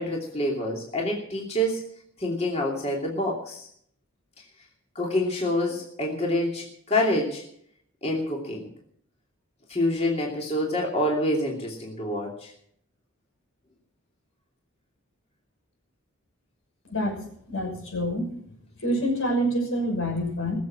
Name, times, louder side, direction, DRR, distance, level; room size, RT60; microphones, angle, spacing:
voice 1, 0.0-1.8 2.2-3.7 4.9-7.4 8.0-8.7 9.7-12.5, left 1 dB, 30° left, -1 dB, 2.8 m, -27 dB
voice 2, 16.9-17.2 17.5-18.3 18.8-20.6, equal, 80° left, 1 dB, 6.2 m, -26 dB
21.5 x 7.5 x 7.6 m, 0.67 s
head